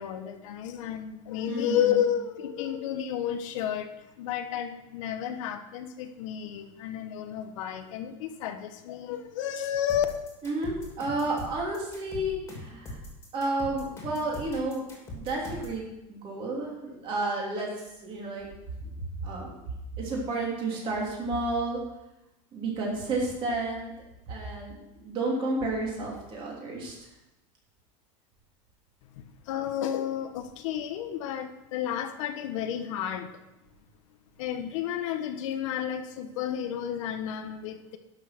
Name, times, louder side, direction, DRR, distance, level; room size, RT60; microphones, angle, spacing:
voice 1, 0.0-3.9 4.2-10.1 29.2-33.3 34.4-38.0, left 10 dB, 75° left, 7 dB, 1.1 m, -31 dB
voice 2, 1.5-2.0 10.4-13.0 13.3-14.9 15.1-15.8 16.1-17.7 18.0-18.4 18.8-18.9 19.2-19.6 20.0-21.8 22.5-23.9 24.3-26.9, right 2 dB, 30° right, -2 dB, 3.2 m, -31 dB
sound 1, 9.9-15.8, left 1 dB, 15° left, 2.7 m, -41 dB
11.5 x 6.4 x 6.0 m, 0.93 s
supercardioid pair, 170°, 16 cm